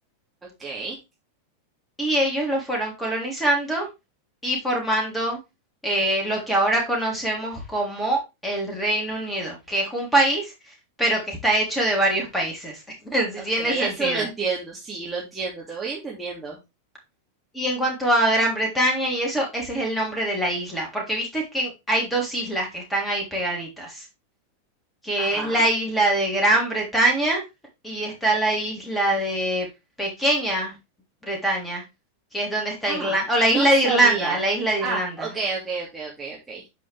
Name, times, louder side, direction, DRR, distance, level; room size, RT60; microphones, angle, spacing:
voice 1, 0.4-1.0 13.4-16.6 25.2-25.6 32.9-34.4 34.8-36.6, right 4 dB, 10° right, -4 dB, 2.5 m, -30 dB
voice 2, 2.0-3.9 4.4-5.4 5.8-10.5 11.0-12.8 13.1-14.3 17.5-24.1 25.0-27.4 27.8-29.7 30.0-30.7 31.2-31.8 32.3-35.3, right 1 dB, 5° left, -1 dB, 3.4 m, -23 dB
9.6 x 5.1 x 3.5 m, 0.24 s
figure-of-eight pair, 90°, 0 cm